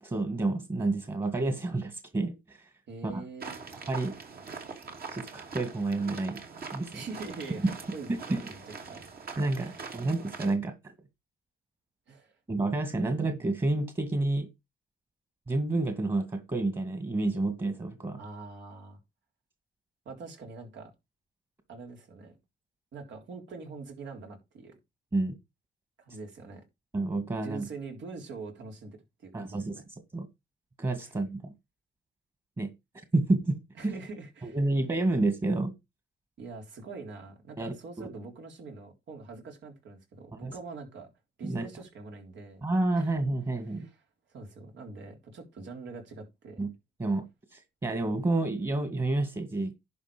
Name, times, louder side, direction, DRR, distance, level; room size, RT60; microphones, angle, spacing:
voice 1, 0.0-2.7 3.0-3.2 3.9-4.1 5.1-6.4 6.7-7.0 8.3-8.4 9.4-10.9 12.5-14.5 15.5-18.2 25.1-25.3 26.9-27.6 29.3-29.8 30.1-30.3 30.8-31.5 32.6-32.7 33.1-33.6 33.8-33.9 34.4-35.7 37.6-38.1 40.4-40.5 41.4-41.7 42.6-43.9 46.6-46.7 47.0-47.2 47.5-49.7, right 2 dB, 25° right, 2.2 m, -29 dB
voice 2, 2.9-3.6 6.9-9.0 9.6-9.9 12.1-12.3 13.0-13.1 18.2-19.0 20.1-20.9 21.7-22.4 22.9-24.8 26.0-26.6 27.4-29.6 31.0-31.2 33.8-34.6 36.4-41.1 41.4-42.6 43.0-43.1 43.7-44.0 44.3-46.6, right 4 dB, 65° right, 3.7 m, -44 dB
sound 1, 3.4-10.6, right 5 dB, 50° right, 3.0 m, -43 dB
11.0 x 5.3 x 5.2 m
cardioid pair, 90°, 20 cm